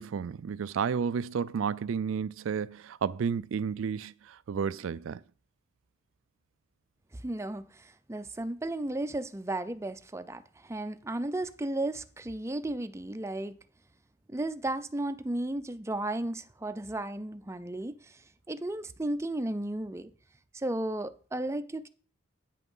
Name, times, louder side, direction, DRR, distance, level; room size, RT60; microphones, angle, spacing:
voice 1, 0.0-5.2, right 6 dB, 80° right, 0.4 m, -32 dB
voice 2, 7.1-13.6 14.3-18.2 18.5-20.1 20.5-21.9, right 1 dB, 15° right, 0.5 m, -34 dB
9.2 x 6.0 x 5.5 m
head